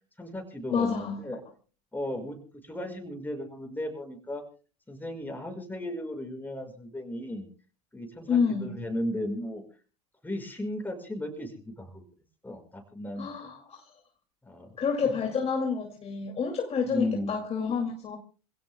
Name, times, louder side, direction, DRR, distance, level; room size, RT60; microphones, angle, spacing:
voice 1, 0.2-1.4 1.9-2.4 2.6-4.4 4.9-7.5 7.9-9.6 10.2-12.0 12.4-13.5 14.4-14.8 15.0-15.1 16.9-17.4, left 1 dB, 10° left, 5.7 m, -35 dB
voice 2, 0.7-1.2 8.3-8.8 13.2-13.8 14.8-18.2, left 6 dB, 30° left, 2.4 m, -29 dB
27.5 x 17.0 x 2.2 m
hypercardioid pair, 85°, 20 cm